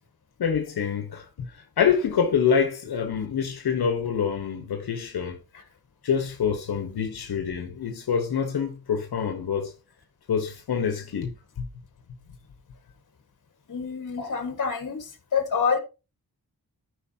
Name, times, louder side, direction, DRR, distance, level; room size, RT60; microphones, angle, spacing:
voice 1, 0.4-5.4 6.0-9.7 10.3-11.7, left 7 dB, 85° left, 1.2 m, -26 dB
voice 2, 13.7-15.8, left 6 dB, 55° left, 1.8 m, -27 dB
13.5 x 5.2 x 2.8 m
wide cardioid pair, 120°, 37 cm